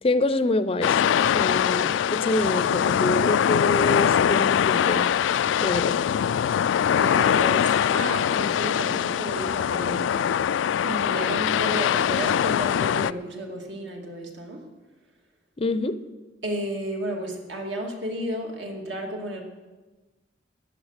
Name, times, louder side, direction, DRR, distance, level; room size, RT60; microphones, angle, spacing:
voice 1, 0.0-5.1 5.6-6.0 15.6-16.0, left 2 dB, 30° left, 13 dB, 0.5 m, -26 dB
sound 1, 0.8-13.1, left 8 dB, 85° left, 0.3 m, -22 dB
voice 2, 6.9-10.2 10.8-14.7 16.4-19.4, right 1 dB, 70° right, 1 dB, 2.4 m, -32 dB
13.5 x 9.4 x 6.6 m, 1.2 s
head